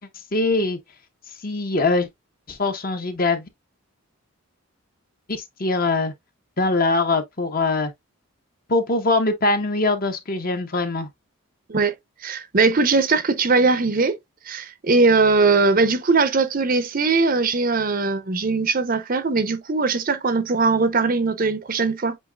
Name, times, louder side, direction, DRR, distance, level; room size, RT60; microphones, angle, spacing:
voice 1, 0.3-0.8 1.4-2.1 2.5-3.4 5.3-6.1 6.6-7.9 8.7-11.1, left 3 dB, 40° left, 1.0 m, -22 dB
voice 2, 12.2-14.2 14.5-22.2, right 4 dB, 40° right, 0.6 m, -20 dB
7.8 x 2.9 x 2.3 m
head